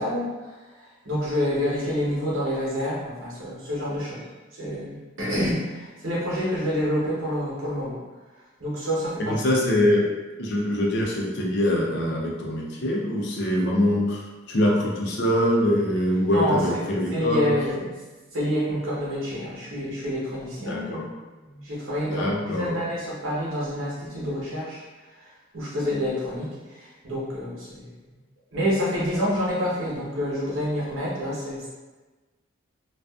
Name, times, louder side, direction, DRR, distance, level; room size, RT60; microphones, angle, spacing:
voice 1, 0.0-4.2 4.5-8.0 8.6-9.4 16.3-16.8 17.1-18.0 18.3-20.9 21.4-24.8 25.5-27.9 28.5-31.7, equal, 75° right, -6 dB, 0.9 m, -28 dB
voice 2, 9.2-10.1 10.4-17.5 20.7-21.1 22.1-22.8, left 1 dB, 55° left, -2 dB, 0.5 m, -23 dB
2.4 x 2.3 x 2.3 m, 1.3 s
head